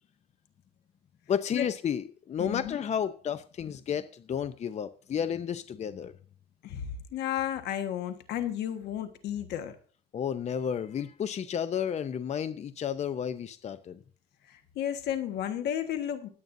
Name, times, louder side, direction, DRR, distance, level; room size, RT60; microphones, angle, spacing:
voice 1, 1.3-6.1 10.1-14.0, left 8 dB, 40° left, 0.7 m, -32 dB
voice 2, 2.4-2.8 6.6-9.8 14.5-16.3, left 10 dB, 80° left, 1.5 m, -33 dB
20.5 x 8.8 x 2.7 m
cardioid pair, 110°, 17 cm